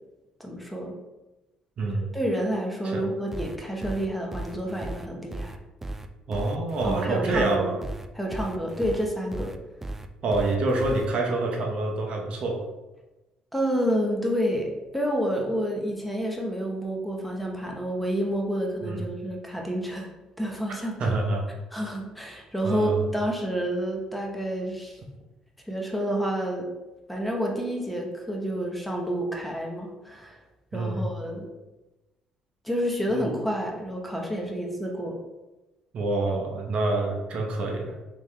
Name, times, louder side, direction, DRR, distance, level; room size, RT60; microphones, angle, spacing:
voice 1, 0.4-0.9 2.1-5.5 6.8-7.7 8.1-9.5 13.5-20.1 20.4-20.9 21.7-25.0 25.7-26.7 27.1-30.3 30.7-31.5 32.6-35.1, equal, 5° left, 0 dB, 0.8 m, -29 dB
voice 2, 1.8-2.1 2.9-3.0 6.3-7.8 10.2-12.6 18.8-19.0 21.0-21.4 22.6-23.0 30.7-31.1 33.1-33.2 35.9-37.9, right 2 dB, 55° right, 1 dB, 0.7 m, -26 dB
sound 1, 3.3-11.1, right 2 dB, 15° right, 0.3 m, -36 dB
3.6 x 3.3 x 3.2 m, 1.1 s
cardioid pair, 95°, 2 cm